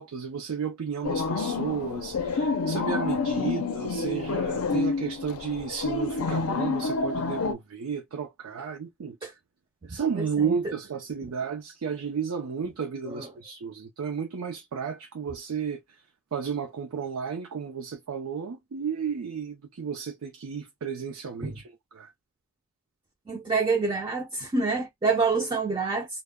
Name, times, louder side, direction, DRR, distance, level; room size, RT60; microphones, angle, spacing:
voice 1, 0.0-9.2 9.8-15.8 16.3-22.1, right 6 dB, 90° right, 0.5 m, -33 dB
sound 1, 1.0-7.5, left 4 dB, 90° left, 0.5 m, -28 dB
voice 2, 10.2-10.6 13.0-13.3 21.4-21.5 23.3-26.1, right 4 dB, 20° right, 0.3 m, -27 dB
2.1 x 2.0 x 3.4 m
head